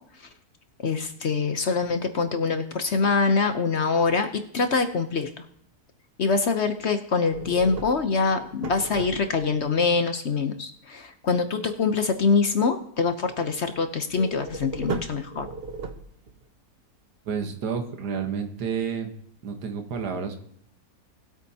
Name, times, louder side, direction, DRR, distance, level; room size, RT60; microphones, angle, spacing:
voice 1, 0.8-4.3 4.5-5.3 6.2-15.5, left 4 dB, 55° left, 8 dB, 0.9 m, -24 dB
sound 1, 7.3-9.6 14.1-16.4, right 4 dB, 45° right, 0.9 m, -36 dB
voice 2, 17.2-19.1 19.4-20.3, right 6 dB, 80° right, 5 dB, 1.7 m, -30 dB
19.5 x 8.5 x 2.8 m, 0.68 s
omnidirectional pair, 1.7 m